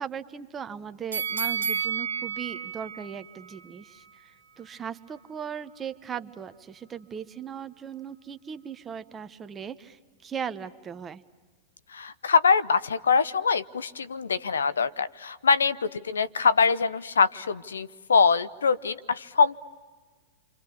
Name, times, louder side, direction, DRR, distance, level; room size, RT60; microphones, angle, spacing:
voice 1, 0.0-4.3 4.6-11.2, right 7 dB, 20° right, 11 dB, 1.1 m, -38 dB
sound 1, 1.1-4.2 4.6-4.7, right 7 dB, 90° right, 1.4 m, -32 dB
voice 2, 11.9-19.6, left 5 dB, 80° left, 16 dB, 0.7 m, -23 dB
29.0 x 25.5 x 7.0 m, 1.4 s
hypercardioid pair, 105°, 0 cm